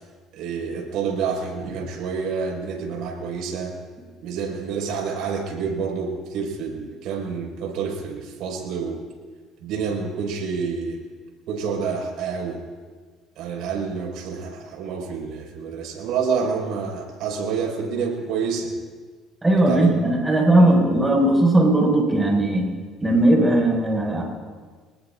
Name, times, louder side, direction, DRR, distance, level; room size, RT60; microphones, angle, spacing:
voice 1, 0.3-3.7 4.2-9.0 9.6-11.0 11.5-12.6 13.4-18.7 19.7-20.0 20.6-20.8, right 5 dB, 75° right, 0 dB, 5.4 m, -28 dB
voice 2, 19.4-22.7 23.0-24.2, right 1 dB, 15° right, -1 dB, 6.0 m, -18 dB
26.0 x 20.0 x 2.6 m, 1.5 s
cardioid pair, 105°, 0 cm